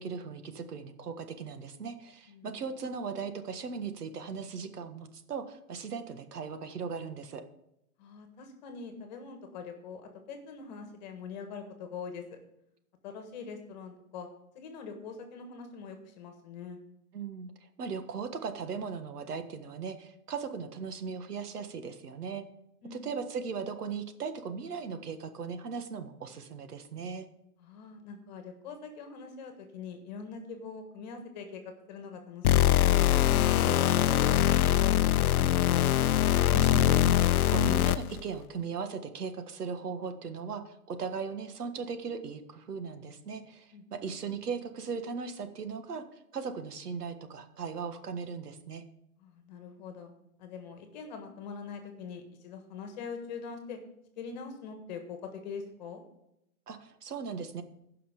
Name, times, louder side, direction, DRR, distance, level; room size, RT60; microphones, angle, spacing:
voice 1, 0.0-7.4 17.1-22.4 22.9-27.3 33.3-33.8 36.5-48.8 56.7-57.6, right 5 dB, 85° right, 8 dB, 1.6 m, -38 dB
voice 2, 8.0-12.4 13.0-14.3 14.5-16.8 22.8-23.1 27.6-31.6 31.9-33.1 33.6-35.8 43.7-43.8 49.2-50.1 50.4-53.8 54.2-56.0, left 5 dB, 30° left, 6 dB, 1.5 m, -43 dB
sound 1, 32.4-38.2, left 13 dB, 70° left, 0.6 m, -23 dB
15.5 x 5.8 x 5.1 m, 0.82 s
hypercardioid pair, 165°, 45 cm